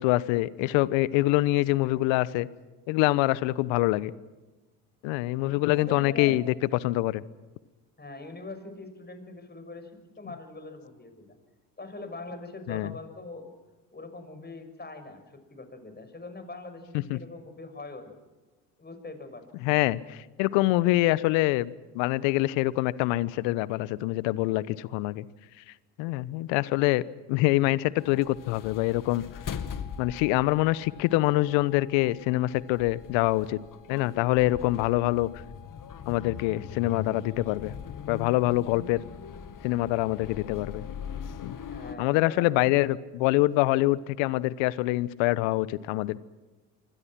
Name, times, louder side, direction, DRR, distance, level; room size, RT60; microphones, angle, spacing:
voice 1, 0.0-2.5 2.9-4.1 5.0-6.5 6.8-7.2 12.7-12.9 17.1-17.2 19.6-25.2 26.0-27.0 27.3-29.2 30.0-33.6 33.9-35.3 36.1-37.7 38.1-39.0 39.6-40.8 41.4-41.6 42.0-46.2, left 18 dB, 65° left, 19 dB, 1.1 m, -25 dB
voice 2, 5.5-6.4 8.0-9.9 10.2-11.4 11.8-13.6 13.9-18.2 18.8-19.5 41.5-42.7, left 3 dB, 20° left, 8 dB, 6.2 m, -42 dB
sound 1, 28.0-42.0, left 7 dB, 40° left, 2.3 m, -41 dB
26.5 x 25.0 x 6.1 m, 1.2 s
hypercardioid pair, 60°, 48 cm